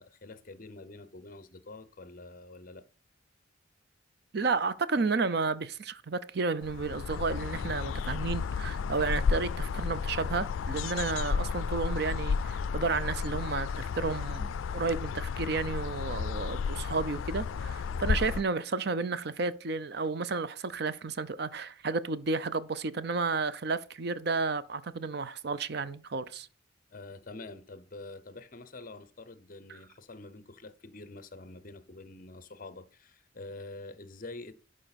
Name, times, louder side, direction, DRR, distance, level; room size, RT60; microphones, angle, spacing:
voice 1, 0.0-2.8 26.9-34.5, left 2 dB, 45° left, 0.8 m, -46 dB
voice 2, 4.3-26.5, right 4 dB, 55° right, 0.6 m, -32 dB
sound 1, 6.6-18.4, left 5 dB, 90° left, 0.4 m, -32 dB
11.5 x 5.0 x 4.1 m
head